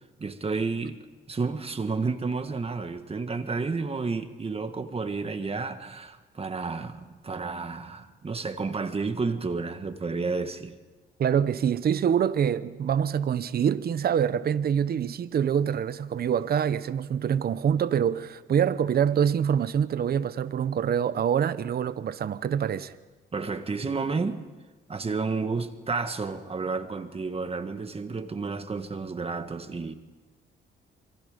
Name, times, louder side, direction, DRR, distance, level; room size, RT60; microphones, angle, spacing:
voice 1, 0.2-1.0 1.3-10.7 23.3-24.4 24.9-29.9, right 4 dB, 30° right, 1.7 m, -31 dB
voice 2, 11.2-22.9, right 8 dB, 50° right, 0.9 m, -25 dB
27.5 x 23.5 x 5.2 m
cardioid pair, 90°, 20 cm